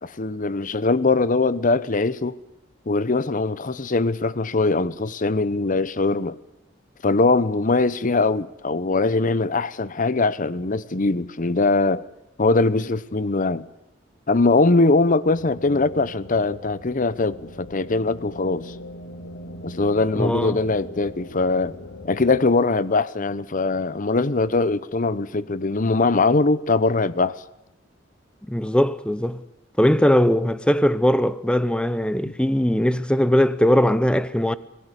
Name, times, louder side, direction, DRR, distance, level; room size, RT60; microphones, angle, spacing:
voice 1, 0.0-2.4 2.9-6.4 7.0-12.0 12.4-13.7 14.3-18.7 19.6-21.7 22.0-27.4 32.3-32.4, left 3 dB, 45° left, 0.9 m, -21 dB
sound 1, 15.2-22.4, equal, 70° left, 2.0 m, -40 dB
voice 2, 20.2-20.6 28.4-29.4 29.8-34.5, equal, 5° left, 0.8 m, -20 dB
26.0 x 18.0 x 8.3 m
head